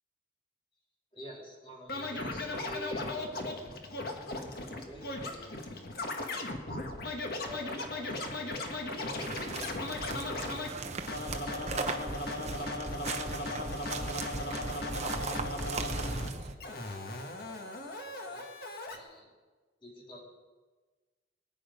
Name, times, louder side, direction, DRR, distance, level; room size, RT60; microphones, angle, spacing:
voice 1, 1.1-4.0 4.7-5.8 7.4-9.1 9.5-10.2 10.7-11.9 12.5-19.3 19.8-20.2, left 1 dB, 30° left, -3 dB, 3.8 m, -51 dB
Scratching (performance technique), 1.9-10.7 11.1-16.3 16.6-19.0, left 1 dB, 55° left, 1.6 m, -37 dB
sound 1, 8.8-16.5, right 4 dB, 40° right, 1.0 m, -39 dB
20.5 x 9.9 x 5.2 m, 1.3 s
head